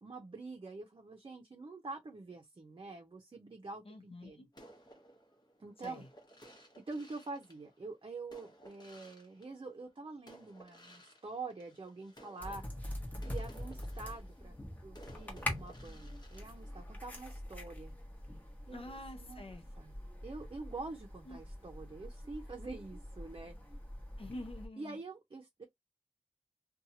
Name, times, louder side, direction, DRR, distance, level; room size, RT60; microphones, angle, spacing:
voice 1, 0.0-4.4 5.6-6.0 6.5-12.6 13.1-14.6 14.8-17.9 18.7-19.5 19.8-19.9 20.2-23.5 24.8-25.6, right 3 dB, 50° right, 0.6 m, -46 dB
voice 2, 3.8-4.5 5.8-6.1 18.7-19.6 21.3-21.4 24.2-25.0, left 1 dB, 65° left, 0.6 m, -47 dB
sound 1, 4.5-9.9 10.3-17.4, right 1 dB, 40° left, 0.9 m, -58 dB
sound 2, 12.4-24.7, left 1 dB, 15° left, 0.9 m, -44 dB
2.7 x 2.3 x 2.6 m
wide cardioid pair, 75°, 10 cm